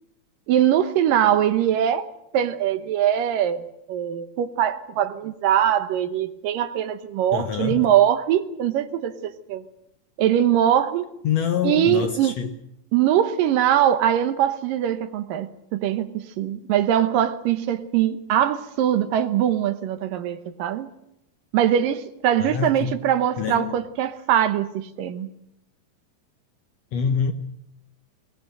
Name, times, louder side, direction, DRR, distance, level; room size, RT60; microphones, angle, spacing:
voice 1, 0.5-2.1 2.3-9.6 10.2-11.1 11.6-12.4 12.9-20.9 21.5-25.3, right 10 dB, 75° right, 2.6 m, -22 dB
voice 2, 7.3-7.9 11.2-12.5 22.4-23.0 23.4-23.8 26.9-27.3, left 7 dB, 75° left, 1.5 m, -26 dB
21.5 x 19.0 x 7.8 m
omnidirectional pair, 4.2 m